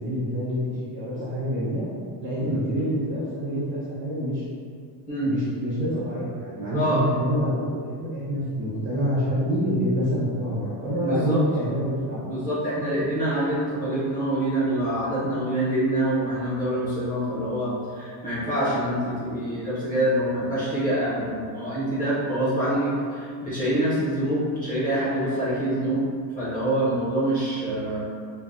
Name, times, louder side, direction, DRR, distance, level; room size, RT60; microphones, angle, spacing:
voice 1, 0.0-1.9 2.2-4.4 5.2-12.3, equal, 30° right, -9 dB, 0.5 m, -27 dB
voice 2, 11.0-11.4 12.3-17.7 18.0-26.0 26.4-28.0, right 1 dB, 20° left, -11 dB, 0.5 m, -25 dB
3.2 x 2.0 x 2.5 m, 2.1 s
cardioid pair, 180°, 45 cm